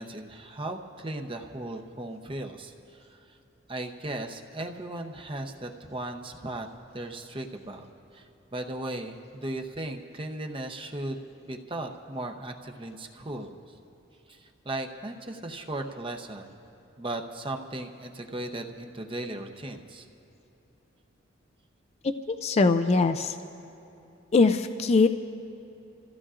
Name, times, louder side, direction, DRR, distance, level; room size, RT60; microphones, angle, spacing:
voice 1, 0.0-3.3 3.7-6.7 6.9-7.9 8.1-13.6 14.3-16.6 17.0-20.1, right 1 dB, 25° right, 4 dB, 0.8 m, -37 dB
voice 2, 22.0-23.4 24.3-25.1, left 3 dB, 30° left, 9 dB, 0.3 m, -22 dB
29.0 x 15.0 x 2.5 m, 2.9 s
head